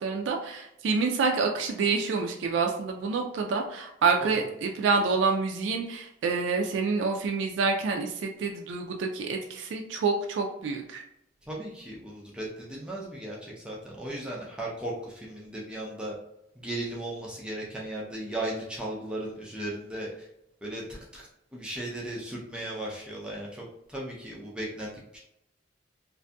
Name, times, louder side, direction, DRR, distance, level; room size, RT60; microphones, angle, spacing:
voice 1, 0.0-11.0, right 4 dB, 80° right, 2 dB, 0.3 m, -27 dB
voice 2, 11.5-16.1 16.6-20.3 20.6-25.2, right 1 dB, 5° right, -4 dB, 0.4 m, -36 dB
2.5 x 2.5 x 2.2 m, 0.81 s
head